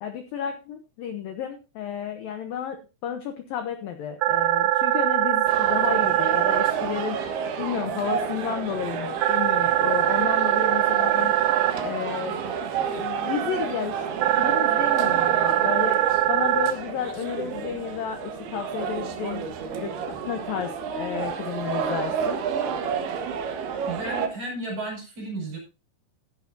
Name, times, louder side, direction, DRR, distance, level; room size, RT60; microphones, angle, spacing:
voice 1, 0.0-7.2 7.6-11.3 11.8-12.4 12.9-14.0 14.4-19.4 19.8-19.9 20.2-22.4, left 8 dB, 80° left, 7 dB, 2.1 m, -32 dB
sound 1, 4.2-6.7 9.2-11.7 14.2-16.7, right 14 dB, 80° right, 2.8 m, -22 dB
sound 2, 5.5-24.3, right 7 dB, 65° right, 3.2 m, -30 dB
voice 2, 23.9-25.6, right 2 dB, 45° right, 0 dB, 7.2 m, -33 dB
14.5 x 10.5 x 2.8 m, 0.29 s
omnidirectional pair, 5.6 m